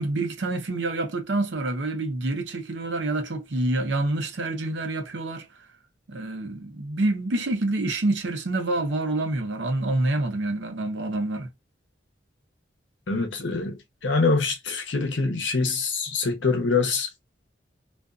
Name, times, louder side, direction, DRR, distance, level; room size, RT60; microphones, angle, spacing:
voice 1, 0.0-5.5 6.1-11.5, right 2 dB, 70° right, 0.7 m, -27 dB
voice 2, 13.1-13.8 14.0-17.1, left 4 dB, 80° left, 0.8 m, -24 dB
2.4 x 2.4 x 2.3 m
head